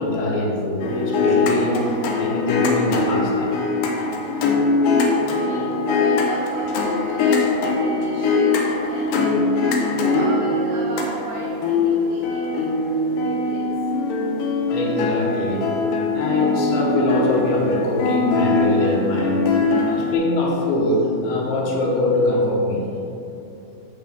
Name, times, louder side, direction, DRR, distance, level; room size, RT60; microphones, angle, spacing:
voice 1, 0.0-3.5 11.9-12.1 14.7-15.7 16.1-19.5 19.9-22.9, left 1 dB, 75° left, -3 dB, 3.0 m, -23 dB
sound 1, 0.8-20.1, left 3 dB, 90° left, 1.9 m, -22 dB
voice 2, 5.4-9.9 10.2-13.7, right 2 dB, 90° right, -3 dB, 1.9 m, -35 dB
8.3 x 7.6 x 3.5 m, 2.9 s
omnidirectional pair, 5.0 m